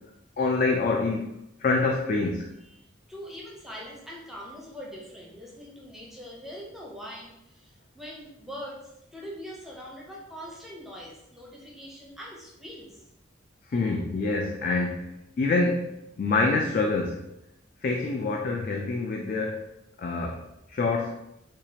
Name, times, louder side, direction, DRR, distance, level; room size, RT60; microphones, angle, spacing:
voice 1, 0.4-1.3 1.6-2.5 13.7-15.1 15.4-17.2 17.8-19.6 20.0-20.4 20.7-21.1, left 3 dB, 45° left, 1 dB, 0.3 m, -26 dB
voice 2, 3.1-13.1, equal, ahead, -3 dB, 0.6 m, -42 dB
4.5 x 2.4 x 2.8 m, 0.85 s
head